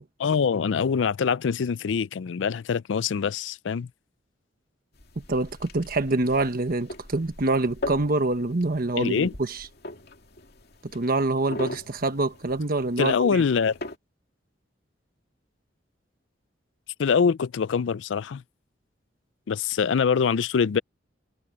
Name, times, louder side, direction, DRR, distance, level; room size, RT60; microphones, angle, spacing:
voice 1, 0.2-3.9 9.0-9.3 13.0-13.7 17.0-18.4 19.5-20.8, left 6 dB, 80° left, 0.4 m, -24 dB
sound 1, 4.9-14.0, left 2 dB, 60° left, 2.5 m, -41 dB
voice 2, 5.2-9.7 10.9-13.4, right 2 dB, 50° right, 1.2 m, -26 dB
head